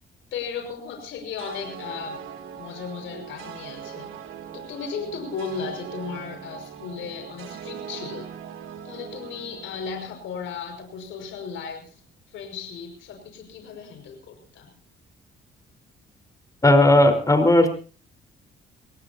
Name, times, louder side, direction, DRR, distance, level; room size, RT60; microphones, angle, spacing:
voice 1, 0.3-2.2 2.5-4.1 4.5-8.3 8.8-12.0 12.3-14.7, left 6 dB, 80° left, 3 dB, 5.9 m, -35 dB
sound 1, 1.4-10.7, right 8 dB, 90° right, 3.1 m, -40 dB
voice 2, 16.6-17.7, left 1 dB, 15° left, 6 dB, 4.6 m, -16 dB
26.0 x 18.5 x 2.9 m, 0.38 s
cardioid pair, 90°, 20 cm